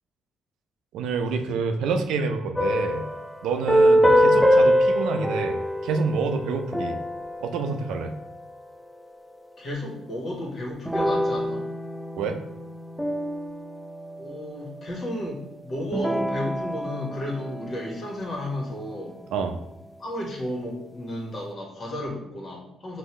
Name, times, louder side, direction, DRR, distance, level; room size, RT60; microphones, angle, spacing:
voice 1, 0.9-3.0 3.4-7.0 7.4-8.1 12.2-12.4 19.3-19.5, right 4 dB, 80° right, 6 dB, 0.5 m, -27 dB
sound 1, 2.6-8.5 10.9-14.7 15.9-18.6, equal, ahead, 0.5 m, -24 dB
voice 2, 4.0-4.4 9.6-11.6 14.2-19.2 20.0-23.0, left 1 dB, 50° left, -2 dB, 1.6 m, -33 dB
5.4 x 2.6 x 3.2 m, 0.89 s
supercardioid pair, 65°, 0 cm